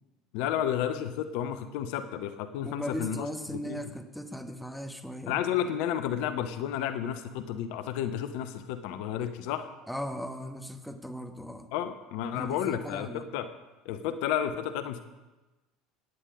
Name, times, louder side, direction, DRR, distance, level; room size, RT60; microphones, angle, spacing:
voice 1, 0.3-3.3 3.5-3.8 5.3-9.7 11.7-13.5 13.8-15.0, left 10 dB, 65° left, 11 dB, 0.8 m, -31 dB
voice 2, 2.6-5.4 9.9-11.7 12.3-13.3, equal, ahead, 6 dB, 1.5 m, -38 dB
15.5 x 10.0 x 5.2 m, 1.1 s
hypercardioid pair, 70°, 0 cm